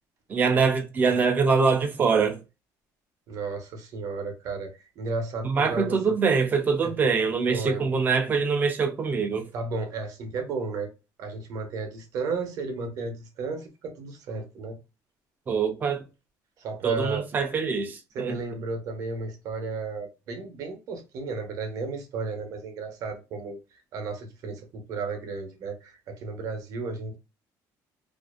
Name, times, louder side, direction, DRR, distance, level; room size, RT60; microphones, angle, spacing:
voice 1, 0.3-2.4 5.4-9.5 15.5-16.0 16.8-18.4, right 5 dB, 25° right, 0.5 m, -24 dB
voice 2, 3.3-6.1 6.8-6.9 7.5-7.8 9.5-10.9 11.2-14.8 16.6-17.3 18.1-23.6 23.9-27.2, right 4 dB, 50° right, 0.8 m, -33 dB
2.5 x 2.4 x 2.4 m
cardioid pair, 175°, 8 cm